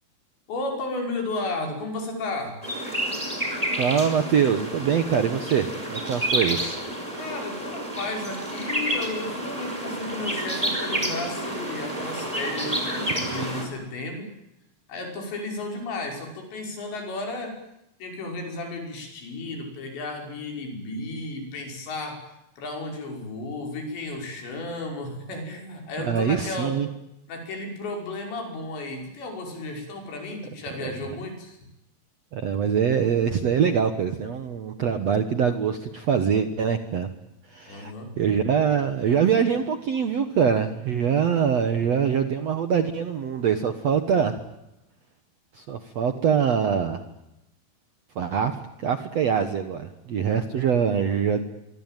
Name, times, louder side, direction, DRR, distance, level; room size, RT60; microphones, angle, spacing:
voice 1, 0.5-2.6 7.1-14.3 14.9-17.6 18.0-22.2 22.6-26.8 27.3-31.6 37.7-38.1, left 2 dB, 90° left, 3 dB, 7.8 m, -33 dB
sound 1, 2.6-13.6, right 1 dB, 10° right, 5.3 m, -29 dB
voice 2, 3.8-6.8 26.0-26.9 30.8-30.9 32.3-37.1 37.5-44.4 45.5-47.0 48.1-51.4, right 7 dB, 65° right, 9 dB, 1.6 m, -24 dB
25.0 x 24.5 x 9.2 m, 0.88 s
omnidirectional pair, 4.9 m